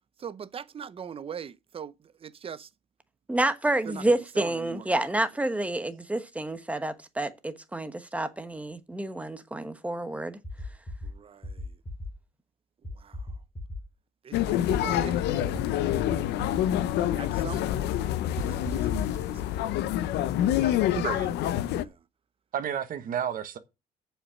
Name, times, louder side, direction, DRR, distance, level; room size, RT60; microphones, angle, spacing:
voice 1, 0.2-2.7 3.8-5.1 11.0-11.8 13.0-13.3 14.2-15.9 17.2-17.9 18.4-18.5 18.7-19.8 20.6-20.9 21.7-22.0, right 7 dB, 35° right, 0.7 m, -42 dB
voice 2, 3.3-10.4, right 1 dB, 10° right, 1.1 m, -29 dB
sound 1, 10.4-11.1 11.4-12.1 12.8-13.8 14.7-15.6 16.0-16.6 18.4-19.2, left 2 dB, 20° left, 2.9 m, -35 dB
sound 2, 14.3-21.9, left 12 dB, 80° left, 0.7 m, -27 dB
voice 3, 20.9-21.4 22.5-23.6, right 8 dB, 55° right, 1.3 m, -31 dB
7.2 x 5.7 x 7.1 m
cardioid pair, 110°, 17 cm